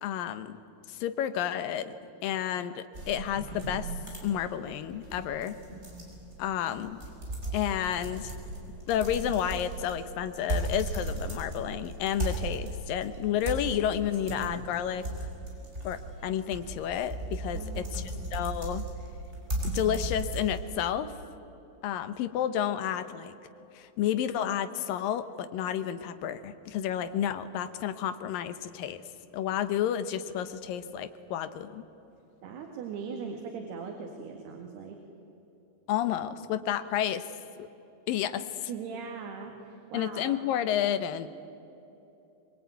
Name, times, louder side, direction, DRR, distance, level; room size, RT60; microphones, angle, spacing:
voice 1, 0.0-0.6 0.9-1.9 2.2-3.9 4.2-5.6 6.4-7.0 7.5-8.3 8.9-15.3 15.8-18.0 18.3-18.8 19.7-21.2 21.8-23.3 23.7-29.0 29.3-31.8 35.9-37.2 37.6-37.7 38.1-38.7 39.9-41.3, left 10 dB, 70° left, 11 dB, 2.4 m, -31 dB
sound 1, 2.9-20.9, right 2 dB, 15° right, 5.2 m, -36 dB
voice 2, 17.5-18.3 32.4-35.0 38.7-40.4, right 5 dB, 85° right, 2 dB, 4.0 m, -40 dB
24.5 x 22.5 x 9.3 m, 2.9 s
omnidirectional pair, 4.5 m